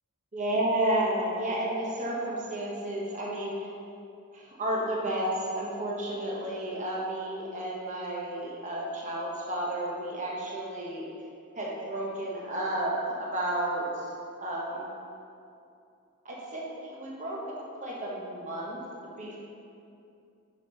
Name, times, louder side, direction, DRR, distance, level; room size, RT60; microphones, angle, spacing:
voice 1, 0.3-3.5 4.3-11.1 11.6-13.9 14.4-14.9 16.2-17.4 17.8-19.3, right 1 dB, 35° right, -4 dB, 1.1 m, -32 dB
5.2 x 4.9 x 5.4 m, 2.6 s
head